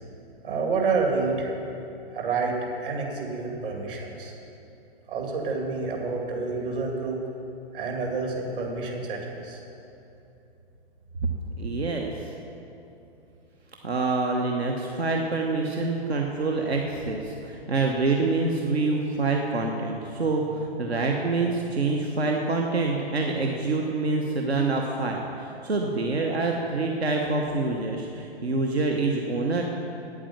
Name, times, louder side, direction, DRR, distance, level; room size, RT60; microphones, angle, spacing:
voice 1, 0.4-1.5 2.1-4.3 5.1-7.2 7.7-9.6, right 4 dB, 60° right, 0 dB, 2.5 m, -28 dB
voice 2, 11.6-12.3 13.8-29.6, right 3 dB, 80° right, 1 dB, 1.1 m, -26 dB
9.1 x 8.6 x 7.2 m, 2.8 s
figure-of-eight pair, 115°, 31 cm